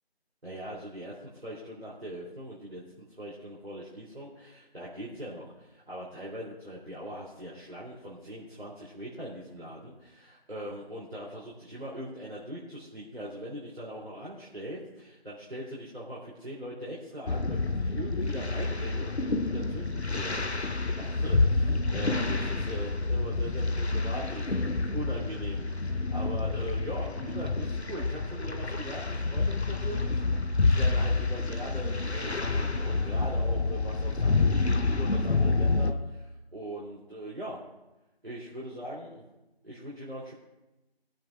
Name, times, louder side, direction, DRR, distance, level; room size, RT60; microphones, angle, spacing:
voice 1, 0.4-37.6 38.2-39.2 39.6-40.3, equal, 65° right, -7 dB, 3.3 m, -41 dB
sound 1, 17.3-35.9, left 3 dB, 80° left, 0.9 m, -28 dB
22.0 x 9.0 x 2.4 m, 1.0 s
figure-of-eight pair, 175°, 32 cm